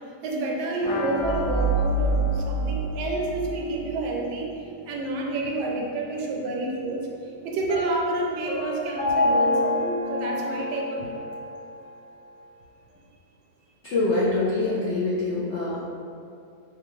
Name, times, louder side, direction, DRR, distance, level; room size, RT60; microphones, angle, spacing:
voice 1, 0.2-9.8 10.1-11.2, right 2 dB, 80° right, -1 dB, 1.2 m, -29 dB
sound 1, 0.8-6.4 6.7-6.8 7.1-7.2, left 1 dB, 60° left, 1.1 m, -37 dB
sound 2, 1.2-4.0, right 3 dB, 45° left, 1.4 m, -26 dB
Piano, 7.7-11.6, left 2 dB, 55° right, 0.6 m, -27 dB
voice 2, 13.8-15.8, left 2 dB, 75° left, -7 dB, 0.6 m, -24 dB
4.6 x 2.3 x 3.0 m, 2.5 s
omnidirectional pair, 1.9 m